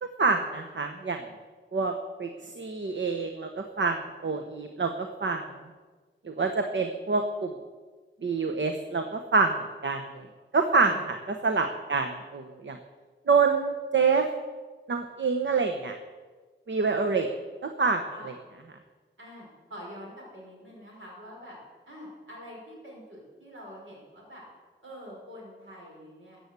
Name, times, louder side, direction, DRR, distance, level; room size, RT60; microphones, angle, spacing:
voice 1, 0.0-1.2 1.7-1.9 2.2-2.3 2.6-5.4 6.2-7.5 8.2-10.3 10.5-12.8 13.3-14.3 14.9-16.0 16.7-17.3 17.6-18.3, right 4 dB, 70° right, 5 dB, 1.0 m, -27 dB
voice 2, 17.0-17.4 18.1-18.3 19.2-21.6 21.9-24.4 24.8-26.5, equal, 90° right, -3 dB, 5.3 m, -46 dB
14.0 x 8.0 x 8.2 m, 1.4 s
wide cardioid pair, 65°, 20 cm